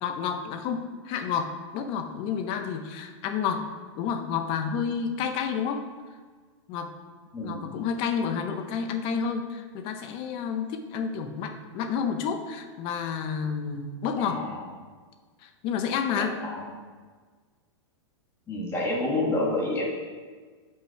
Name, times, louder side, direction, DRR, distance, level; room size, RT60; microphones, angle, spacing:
voice 1, 0.0-3.7 4.0-5.8 6.7-6.9 7.4-14.4 15.4-16.4, left 6 dB, 35° left, 7 dB, 0.8 m, -30 dB
voice 2, 7.3-7.7 14.2-14.6 16.1-16.7 18.5-19.9, left 2 dB, 15° left, -3 dB, 1.4 m, -29 dB
8.2 x 5.5 x 4.6 m, 1.5 s
hypercardioid pair, 145°, 15 cm